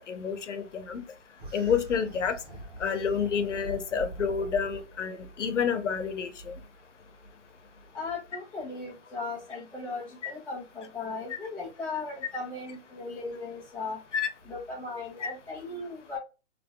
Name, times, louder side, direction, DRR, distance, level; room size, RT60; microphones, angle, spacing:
voice 1, 0.1-1.0 1.5-2.4 2.8-6.5 10.2-10.3 14.1-14.3 15.2-15.3, left 6 dB, 90° left, 0.9 m, -29 dB
sound 1, 1.4-4.8, right 1 dB, 45° right, 1.7 m, -43 dB
voice 2, 7.9-14.0 14.4-16.2, left 3 dB, 5° left, 1.1 m, -37 dB
3.5 x 3.2 x 2.3 m
hypercardioid pair, 160°, 35 cm